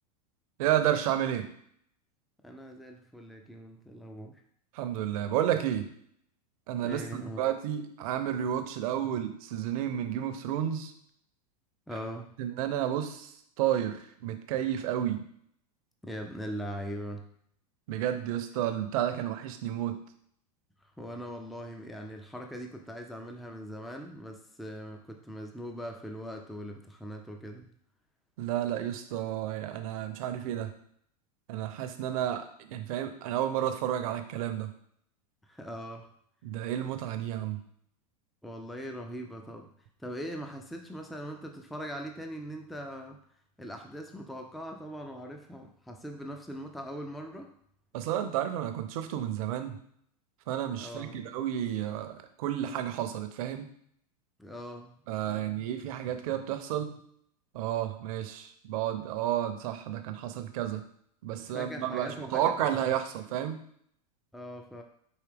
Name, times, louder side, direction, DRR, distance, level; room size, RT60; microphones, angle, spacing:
voice 1, 0.6-1.5 4.7-5.9 6.7-10.9 12.4-13.3 13.6-15.2 17.9-20.0 28.4-30.7 31.5-34.7 36.4-37.6 47.9-49.8 50.5-52.1 52.4-53.7 55.1-56.9 57.5-60.8 61.2-63.6, right 11 dB, 60° right, 8 dB, 0.6 m, -31 dB
voice 2, 2.4-4.4 6.8-7.4 11.9-12.3 16.0-17.2 20.8-27.6 35.4-36.1 38.4-39.7 40.0-43.2 43.6-47.5 50.8-51.2 54.4-55.0 55.3-55.6 61.4-62.8 64.3-64.8, equal, ahead, 3 dB, 0.3 m, -41 dB
4.8 x 2.7 x 3.4 m, 0.67 s
hypercardioid pair, 120°, 20 cm